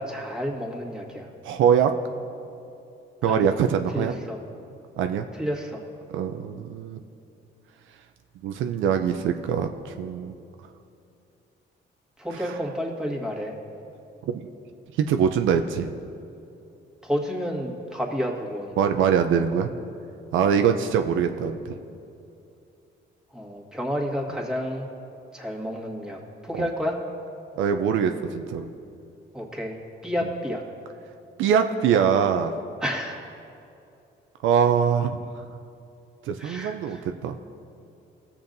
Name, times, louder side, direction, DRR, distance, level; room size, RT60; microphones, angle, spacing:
voice 1, 0.0-1.3 3.2-3.5 3.9-4.4 5.3-5.8 12.2-13.5 17.0-18.7 23.3-24.9 25.3-27.0 29.3-29.8 30.0-30.6 32.8-33.2 36.4-37.0, equal, 5° right, -2 dB, 1.7 m, -30 dB
voice 2, 1.4-1.9 3.2-4.1 5.0-5.2 6.1-7.0 8.4-10.4 14.2-14.5 15.0-15.9 18.8-19.7 20.3-21.8 26.6-26.7 27.6-28.7 31.4-32.5 34.4-35.2 36.3-37.4, right 7 dB, 80° right, 6 dB, 0.5 m, -23 dB
18.0 x 7.1 x 2.6 m, 2.7 s
cardioid pair, 90°, 20 cm